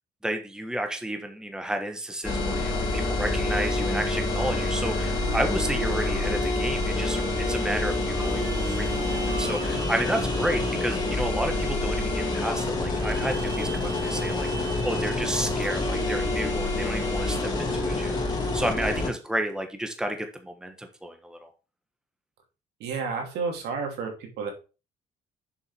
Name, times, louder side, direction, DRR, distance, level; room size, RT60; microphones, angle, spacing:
voice 1, 0.2-21.5, right 1 dB, 5° right, 5 dB, 1.5 m, -31 dB
sound 1, 2.2-19.1, left 2 dB, 25° left, 3.6 m, -27 dB
Wind instrument woodwind instrument, 4.3-6.5 6.8-9.9, right 3 dB, 40° right, 2.8 m, -39 dB
sound 2, 8.2-12.0 13.0-15.2, right 2 dB, 20° right, 1.9 m, -42 dB
voice 2, 22.8-24.5, right 5 dB, 80° right, 3 dB, 2.7 m, -31 dB
7.1 x 5.4 x 4.7 m, 0.32 s
cardioid pair, 110°, 17 cm